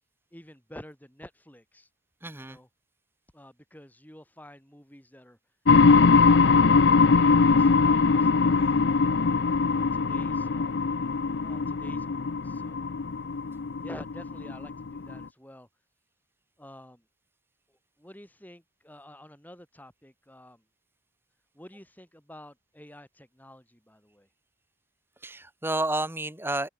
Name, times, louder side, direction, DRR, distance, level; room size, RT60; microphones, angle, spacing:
voice 1, 0.3-1.9 2.3-2.7 3.3-5.4 5.9-9.4 9.7-10.8 11.4-12.8 13.8-15.7 16.6-17.0 17.7-20.6 21.5-24.3, left 1 dB, 10° left, 8.0 m, -50 dB
voice 2, 2.2-2.6 8.5-8.6 25.2-26.7, right 2 dB, 10° right, 2.2 m, -30 dB
sound 1, 5.7-15.2, left 4 dB, 65° left, 0.6 m, -22 dB
head